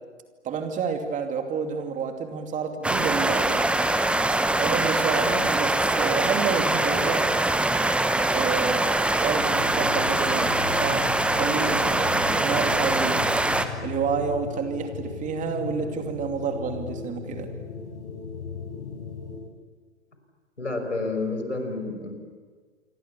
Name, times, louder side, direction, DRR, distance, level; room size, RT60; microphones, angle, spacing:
voice 1, 0.4-3.7 4.5-7.3 8.3-8.9 9.2-13.3 13.8-17.5, right 6 dB, 20° right, 5 dB, 2.7 m, -29 dB
sound 1, 2.8-13.7, right 2 dB, 5° right, 1.1 m, -23 dB
sound 2, 9.3-19.5, left 5 dB, 55° left, 4.9 m, -37 dB
voice 2, 20.6-22.2, left 3 dB, 85° left, 5 dB, 5.6 m, -29 dB
27.5 x 24.5 x 7.1 m, 1.5 s
figure-of-eight pair, 105°, 35 cm